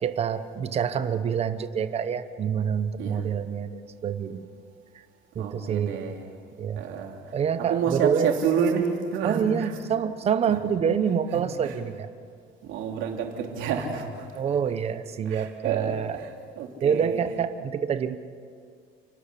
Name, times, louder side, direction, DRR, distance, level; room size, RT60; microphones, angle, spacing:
voice 1, 0.0-4.5 5.3-6.1 6.6-6.8 7.3-8.3 9.2-12.1 14.3-16.2 16.8-18.2, right 7 dB, 30° right, 12 dB, 0.9 m, -27 dB
voice 2, 5.4-6.3 6.8-7.3 7.7-9.7 11.3-11.7 12.6-14.4 15.2-17.2, right 6 dB, 70° right, 2 dB, 3.2 m, -29 dB
29.5 x 12.5 x 8.4 m, 2.2 s
cardioid pair, 175°, 21 cm